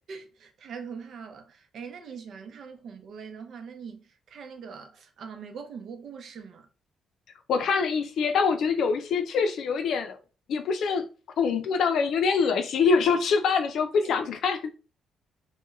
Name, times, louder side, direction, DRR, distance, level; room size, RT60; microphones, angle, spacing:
voice 1, 0.1-6.7 14.0-14.1, right 6 dB, 65° right, 0.6 m, -42 dB
voice 2, 7.5-10.2 10.5-11.1 11.4-14.7, left 5 dB, 70° left, 0.4 m, -24 dB
2.2 x 2.2 x 3.0 m
cardioid pair, 90°, 0 cm